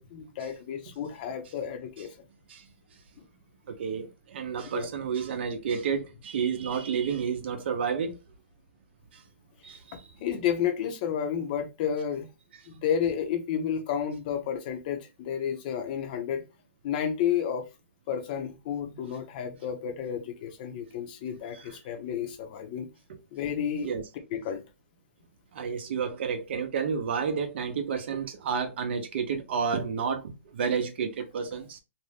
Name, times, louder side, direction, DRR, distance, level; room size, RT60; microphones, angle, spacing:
voice 1, 0.0-2.1 4.7-4.9 10.2-12.3 12.7-16.4 16.8-17.7 18.1-22.9 23.3-23.9 24.3-24.6, left 8 dB, 40° left, 0.7 m, -31 dB
voice 2, 3.7-8.2 9.1-9.2 9.6-10.0 21.6-21.8 23.8-24.0 25.5-31.8, right 6 dB, 55° right, 0.8 m, -30 dB
2.7 x 2.2 x 3.3 m
hypercardioid pair, 155°, 7 cm